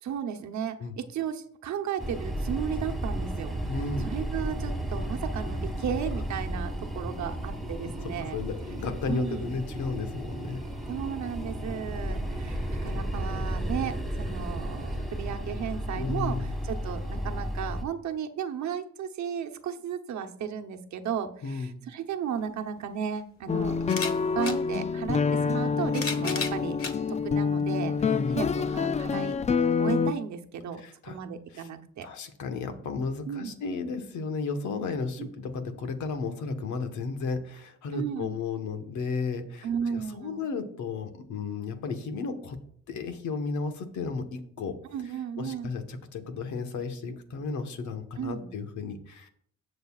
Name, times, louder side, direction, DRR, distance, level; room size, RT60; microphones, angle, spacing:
voice 1, 0.0-3.5 4.0-8.4 9.0-9.5 10.9-23.9 24.2-26.8 27.1-29.4 29.8-32.1 33.3-33.6 35.2-35.3 37.9-38.4 39.6-40.5 44.9-45.7 48.2-48.5, right 8 dB, 65° right, 6 dB, 1.0 m, -34 dB
sound 1, 2.0-17.8, right 1 dB, ahead, 1.7 m, -33 dB
voice 2, 3.7-4.1 7.8-10.6 12.5-12.7 15.9-16.5 21.4-21.8 28.0-28.5 30.8-31.2 31.5-31.7 32.0-42.6 42.9-44.8 45.4-49.3, left 4 dB, 75° left, 6 dB, 1.4 m, -34 dB
sound 2, 22.4-22.5 23.8-24.6 25.6-27.0 27.7-27.8 29.1-29.2, left 4 dB, 45° left, 1.3 m, -34 dB
sound 3, 23.5-30.1, left 5 dB, 25° left, 0.4 m, -27 dB
19.0 x 6.6 x 2.4 m, 0.64 s
cardioid pair, 90°, 30 cm